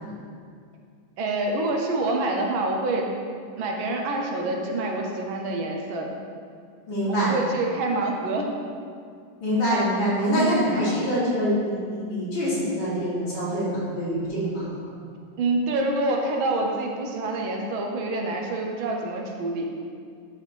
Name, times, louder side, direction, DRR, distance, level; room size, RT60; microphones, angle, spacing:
voice 1, 1.2-3.1 3.6-6.1 7.1-8.5 10.3-10.8 15.4-19.7, right 2 dB, 85° right, 1 dB, 1.7 m, -26 dB
voice 2, 6.9-7.3 9.4-14.9, equal, 75° left, -9 dB, 3.0 m, -25 dB
10.5 x 5.0 x 3.3 m, 2.2 s
omnidirectional pair, 2.2 m